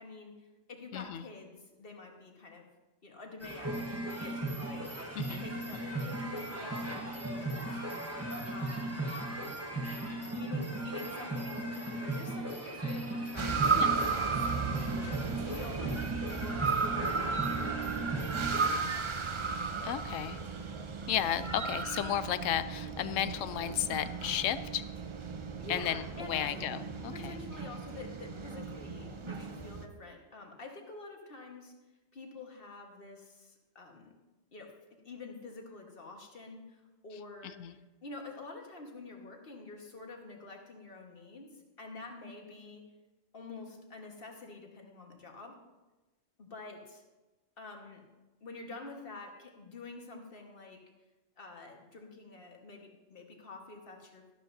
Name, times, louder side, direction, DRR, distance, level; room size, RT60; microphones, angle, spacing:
voice 1, 0.0-2.7 3.0-5.1 5.4-7.9 8.5-9.0 10.3-15.1 15.5-19.2 25.6-26.7 27.1-31.7 32.1-34.1 34.5-42.8 43.3-45.6 46.4-47.0 47.6-48.0 48.4-50.8 51.4-54.3, left 3 dB, 50° left, 2 dB, 1.6 m, -48 dB
voice 2, 0.9-1.2 5.2-5.4 13.7-13.9 19.8-20.4 21.1-24.8 25.7-27.3 37.4-37.8, left 10 dB, 90° left, 13 dB, 1.0 m, -33 dB
sound 1, 3.4-18.8, right 1 dB, 15° right, 1.0 m, -37 dB
sound 2, 13.4-29.8, right 5 dB, 35° right, 0.5 m, -35 dB
12.5 x 12.0 x 2.7 m, 1.1 s
omnidirectional pair, 1.3 m